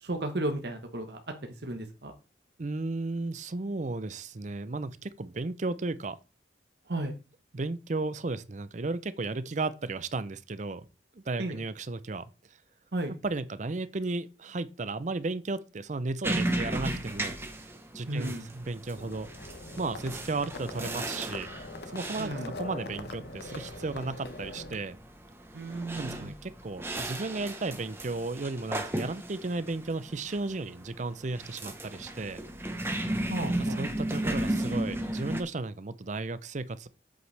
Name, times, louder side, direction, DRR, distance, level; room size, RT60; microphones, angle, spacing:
voice 1, 0.0-2.1 6.9-7.1 11.4-11.6 12.9-13.1 18.1-18.5 22.2-22.5 25.5-26.3 33.3-33.8, right 1 dB, 60° right, 1.1 m, -34 dB
voice 2, 2.6-6.2 7.5-10.9 11.1-12.3 13.2-17.4 17.9-19.3 19.8-21.5 21.9-25.0 26.0-32.4 33.6-36.9, right 3 dB, 40° right, 0.6 m, -34 dB
sound 1, 16.2-35.4, right 1 dB, 15° right, 1.0 m, -35 dB
Livestock farm animals working animals, 19.0-24.8, left 2 dB, 60° left, 0.9 m, -42 dB
8.0 x 7.9 x 3.4 m
head